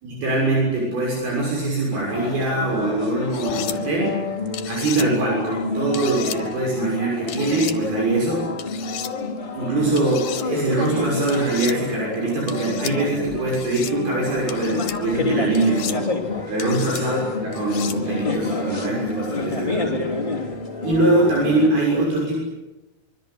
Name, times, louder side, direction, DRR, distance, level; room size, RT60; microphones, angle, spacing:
voice 1, 0.0-4.2 4.6-8.5 9.5-16.2 16.5-20.0 20.8-22.4, right 2 dB, 75° right, -2 dB, 8.4 m, -22 dB
sound 1, 1.9-21.7, left 3 dB, 15° left, 3.1 m, -29 dB
sound 2, 3.3-3.8 4.5-5.1 5.9-6.4 7.3-7.8 8.6-9.1 10.0-10.5 11.3-11.8 12.5-12.9 13.5-13.9 14.5-15.0 15.5-16.0 16.6-17.0 17.5-18.0, left 11 dB, 70° left, 3.1 m, -33 dB
sound 3, 16.2-16.8 18.3-18.9 20.6-21.3, equal, 5° right, 0.8 m, -37 dB
25.0 x 24.5 x 8.7 m, 1.1 s
omnidirectional pair, 4.4 m